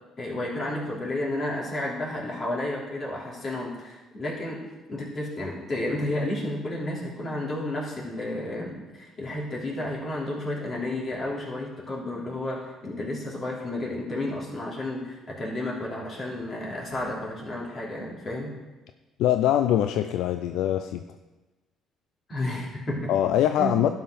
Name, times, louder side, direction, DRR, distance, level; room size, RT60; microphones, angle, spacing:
voice 1, 0.2-4.6 4.9-18.5 22.3-23.1 23.6-23.8, left 1 dB, 45° left, -4 dB, 3.4 m, -32 dB
voice 2, 19.2-21.1 23.1-23.9, left 11 dB, 75° left, 8 dB, 0.4 m, -23 dB
11.5 x 5.7 x 5.2 m, 1.1 s
supercardioid pair, 70°, 0 cm